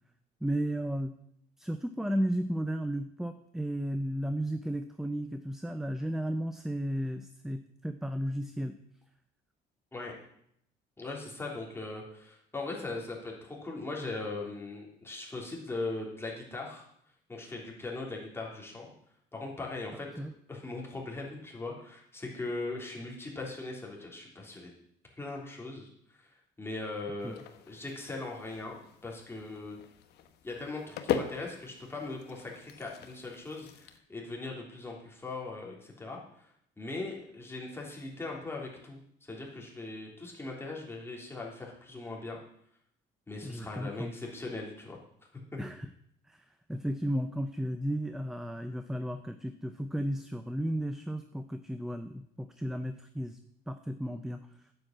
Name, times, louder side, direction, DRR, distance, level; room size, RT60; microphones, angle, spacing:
voice 1, 0.4-1.1 1.6-8.7 20.2-20.3 27.2-27.3 43.4-44.1 45.6-45.9 46.3-53.4 53.7-54.5, equal, ahead, 9 dB, 0.6 m, -34 dB
voice 2, 11.0-16.8 17.3-18.9 19.3-24.7 25.2-25.9 26.2-26.3 26.6-27.3 27.7-29.8 30.4-36.5 36.8-42.4 43.3-45.0 45.5-45.6, left 3 dB, 15° left, -2 dB, 3.4 m, -40 dB
sound 1, 27.2-34.0, left 9 dB, 75° left, 1.1 m, -40 dB
9.4 x 7.9 x 7.4 m, 0.71 s
cardioid pair, 110°, 17 cm